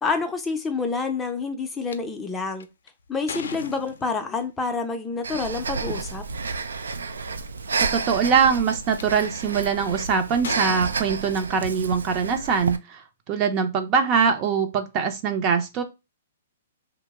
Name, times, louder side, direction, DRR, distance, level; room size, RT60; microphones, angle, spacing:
voice 1, 0.0-2.7 3.1-6.2, left 4 dB, 15° left, 0.4 m, -28 dB
sound 1, 1.9-2.0 2.6-4.5 5.7-5.9 6.6-6.7 6.9-7.3 8.0-9.0 9.7-10.0 10.4-11.9, left 5 dB, 75° left, 0.4 m, -38 dB
Breathing, 5.2-12.8, right 4 dB, 85° right, 0.3 m, -30 dB
voice 2, 7.8-15.8, right 6 dB, 35° right, 0.5 m, -23 dB
2.9 x 2.0 x 3.4 m
hypercardioid pair, 130°, 0 cm